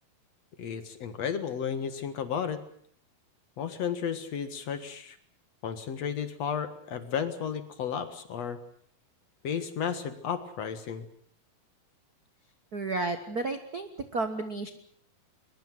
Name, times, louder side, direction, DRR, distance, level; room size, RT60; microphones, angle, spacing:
voice 1, 0.6-2.6 3.6-5.2 5.6-8.6 9.4-11.1, left 7 dB, 55° left, 11 dB, 2.4 m, -33 dB
voice 2, 12.7-14.7, right 3 dB, 75° right, 9 dB, 0.8 m, -32 dB
22.5 x 22.0 x 7.6 m, 0.62 s
omnidirectional pair, 4.1 m